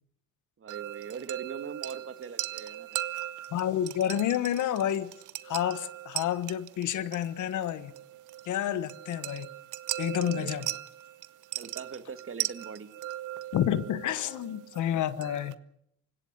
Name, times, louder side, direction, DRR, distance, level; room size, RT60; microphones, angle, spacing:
voice 1, 0.6-2.9 10.2-10.7 11.6-12.9, right 6 dB, 45° right, 1.9 m, -42 dB
sound 1, 0.7-15.5, right 14 dB, 80° right, 0.9 m, -39 dB
voice 2, 3.5-5.1 5.4-7.9 8.5-9.5 10.0-10.7 13.5-15.6, left 10 dB, 75° left, 1.3 m, -29 dB
28.0 x 17.0 x 6.8 m
cardioid pair, 90°, 30 cm